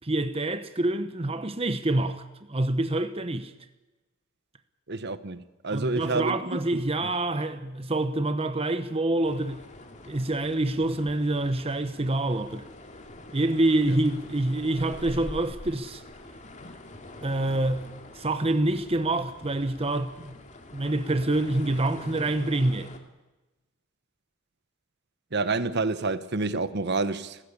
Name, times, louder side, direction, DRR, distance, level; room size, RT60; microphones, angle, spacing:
voice 1, 0.0-3.5 5.7-9.6 10.1-12.6 13.3-16.0 17.2-17.9 18.1-20.4 20.7-22.9, right 2 dB, 25° right, 0.9 m, -26 dB
voice 2, 4.9-6.3 6.7-6.8 25.3-27.4, right 3 dB, 50° right, 1.1 m, -28 dB
sound 1, 9.2-23.0, left 1 dB, 35° left, 2.4 m, -45 dB
29.5 x 15.5 x 8.6 m
head